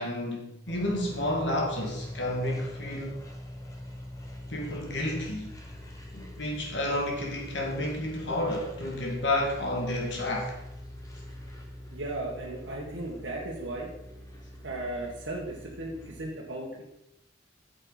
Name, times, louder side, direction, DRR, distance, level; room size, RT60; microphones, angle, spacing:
voice 1, 0.0-3.2 4.5-5.5 6.1-10.6, left 1 dB, 65° left, -1 dB, 1.9 m, -31 dB
sound 1, 0.7-16.3, left 1 dB, 15° left, 1.2 m, -44 dB
voice 2, 11.9-13.9 14.6-16.8, right 2 dB, 75° right, -3 dB, 1.6 m, -36 dB
9.4 x 7.7 x 4.1 m, 0.86 s
head